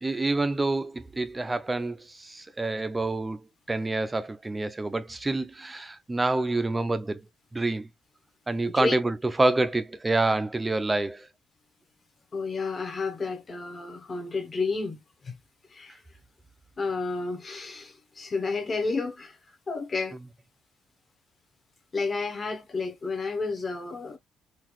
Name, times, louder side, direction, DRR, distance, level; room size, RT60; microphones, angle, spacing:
voice 1, 0.0-7.2 7.5-7.9 8.5-11.3, right 2 dB, 15° right, 0.5 m, -27 dB
voice 2, 12.3-15.4 15.7-16.0 16.8-19.4 19.7-20.2 21.9-24.2, left 3 dB, 25° left, 0.8 m, -31 dB
3.9 x 2.3 x 3.0 m
cardioid pair, 155°, 0 cm